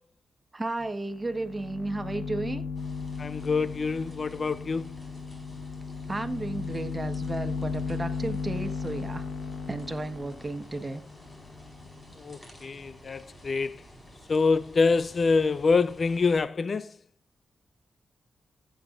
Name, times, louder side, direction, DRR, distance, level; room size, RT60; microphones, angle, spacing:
voice 1, 0.5-2.6 6.1-9.3 9.7-11.0, right 2 dB, 25° right, 1.3 m, -33 dB
sound 1, 0.8-0.9 1.2-12.3, left 5 dB, 70° left, 1.3 m, -36 dB
sound 2, 2.8-16.4, equal, 20° left, 4.6 m, -51 dB
voice 2, 3.2-4.9 12.2-13.8 14.3-16.9, left 4 dB, 50° left, 0.5 m, -26 dB
14.5 x 9.0 x 2.6 m
cardioid pair, 65°, 0 cm